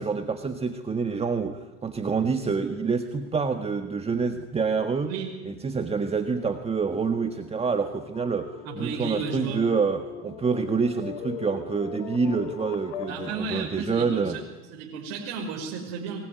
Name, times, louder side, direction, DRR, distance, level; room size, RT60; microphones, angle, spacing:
voice 1, 0.0-5.1 5.4-14.4, right 5 dB, 20° right, 7 dB, 1.6 m, -27 dB
sound 1, 6.4-13.7, left 10 dB, 85° left, 3.0 m, -41 dB
voice 2, 8.6-9.6 13.1-14.4 14.7-16.2, right 5 dB, 65° right, 0 dB, 5.5 m, -33 dB
23.0 x 21.5 x 9.5 m, 1.2 s
supercardioid pair, 105°, 30 cm